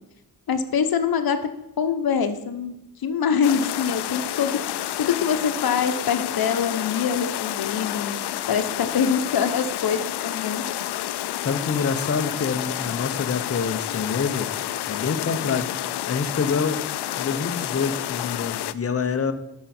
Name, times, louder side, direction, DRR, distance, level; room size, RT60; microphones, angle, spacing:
voice 1, 0.5-1.4 1.8-2.7 3.0-4.6 5.0-8.2 8.5-10.6, left 7 dB, 65° left, 9 dB, 1.0 m, -24 dB
sound 1, 3.4-18.7, left 13 dB, 80° left, 0.5 m, -29 dB
voice 2, 11.4-14.5 14.8-15.7 16.1-16.8 17.2-19.3, left 5 dB, 35° left, 9 dB, 0.8 m, -26 dB
10.5 x 6.7 x 4.3 m, 0.90 s
cardioid pair, 100°, 39 cm